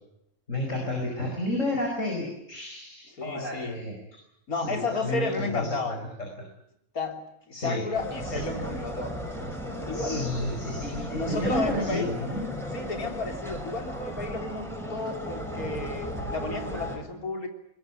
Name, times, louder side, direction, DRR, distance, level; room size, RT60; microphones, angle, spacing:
voice 1, 0.5-4.0 4.5-6.3 7.5-7.8 8.2-8.4 9.9-12.5, left 1 dB, 60° left, 2 dB, 5.6 m, -31 dB
voice 2, 3.2-3.8 4.5-6.0 6.9-7.2 7.5-9.1 9.9-10.6 11.1-12.1 12.7-17.5, left 3 dB, 85° left, 5 dB, 3.9 m, -32 dB
sound 1, 7.9-17.0, equal, ahead, 5.8 m, -35 dB
21.5 x 21.0 x 9.9 m, 0.79 s
omnidirectional pair, 1.5 m